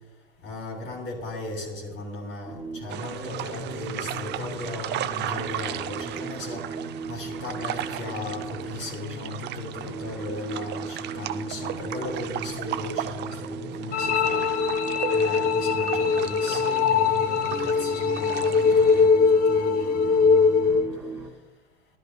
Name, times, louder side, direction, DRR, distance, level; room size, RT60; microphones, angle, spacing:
voice 1, 0.4-6.7 7.1-14.4 15.1-20.8, left 2 dB, 45° left, -1 dB, 2.9 m, -37 dB
sound 1, 2.5-21.3, right 3 dB, 10° right, 2.5 m, -38 dB
sound 2, 2.9-19.1, right 12 dB, 35° right, 0.6 m, -36 dB
sound 3, 13.9-20.9, left 5 dB, 30° left, 0.6 m, -21 dB
13.0 x 12.0 x 2.3 m, 1.1 s
hypercardioid pair, 85°, 29 cm